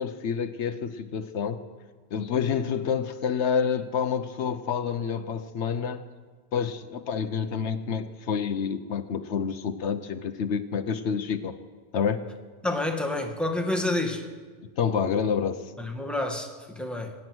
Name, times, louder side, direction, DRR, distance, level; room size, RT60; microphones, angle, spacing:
voice 1, 0.0-1.6 2.1-6.0 6.5-11.6 11.9-12.2 14.8-15.7, left 6 dB, 80° left, 11 dB, 1.1 m, -28 dB
voice 2, 12.6-14.3 15.8-17.1, left 2 dB, ahead, 2 dB, 1.6 m, -29 dB
23.5 x 9.5 x 6.2 m, 1.4 s
omnidirectional pair, 1.2 m